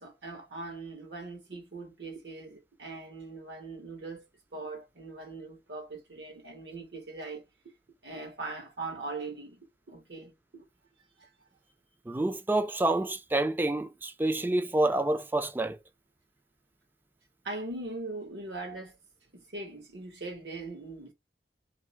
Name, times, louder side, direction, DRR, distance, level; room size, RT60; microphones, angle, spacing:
voice 1, 0.0-7.7 8.0-10.6 11.2-11.3 17.4-19.0 19.3-21.1, right 3 dB, 70° right, 1.1 m, -41 dB
voice 2, 12.1-15.8, right 2 dB, 10° right, 0.3 m, -28 dB
2.6 x 2.1 x 3.9 m
head